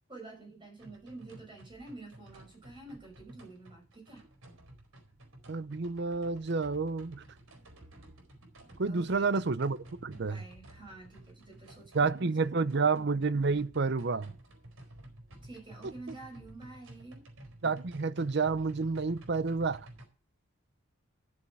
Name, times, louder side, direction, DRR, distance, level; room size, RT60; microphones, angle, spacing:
voice 1, 0.1-4.2 8.8-9.3 10.1-12.9 15.4-17.2, right 2 dB, 25° right, 5.8 m, -49 dB
sound 1, 0.8-20.1, right 1 dB, 85° right, 4.5 m, -53 dB
voice 2, 5.5-7.2 8.8-10.4 11.9-14.3 17.6-19.9, right 4 dB, 55° right, 0.6 m, -29 dB
12.0 x 7.3 x 4.8 m
head